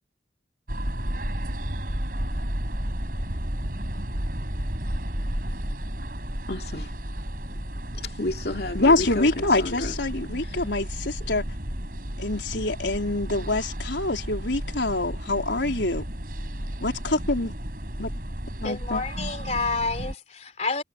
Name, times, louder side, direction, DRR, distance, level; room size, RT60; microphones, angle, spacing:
sound 1, 0.7-20.1, equal, 50° right, 4.7 m, -32 dB
voice 1, 6.5-6.9 8.0-10.0 10.4-10.7, left 1 dB, 60° left, 2.6 m, -32 dB
voice 2, 8.7-11.4 12.2-16.0 16.8-17.5 18.0-18.1 18.6-19.0, left 2 dB, 85° left, 4.1 m, -25 dB
voice 3, 18.6-20.8, left 3 dB, 40° left, 3.3 m, -29 dB
head